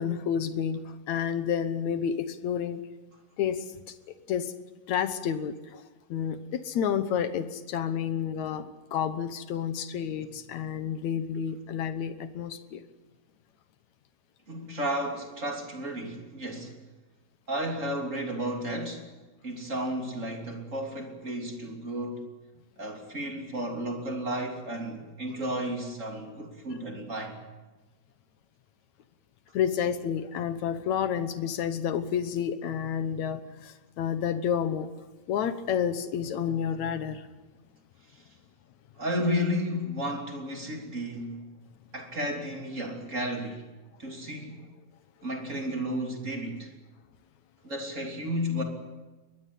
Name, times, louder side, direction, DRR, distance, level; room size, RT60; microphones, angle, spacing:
voice 1, 0.0-2.8 3.4-4.0 4.3-4.5 4.9-5.8 6.1-12.8 29.5-34.9 35.3-37.3, left 8 dB, 65° left, 2.1 m, -30 dB
voice 2, 14.5-16.7 17.5-19.0 19.4-22.3 22.8-27.4 38.2-38.3 39.0-41.4 41.9-43.6 44.0-44.6 45.2-46.7 47.6-48.6, equal, 20° right, 3.1 m, -33 dB
22.5 x 19.5 x 8.6 m
omnidirectional pair, 4.0 m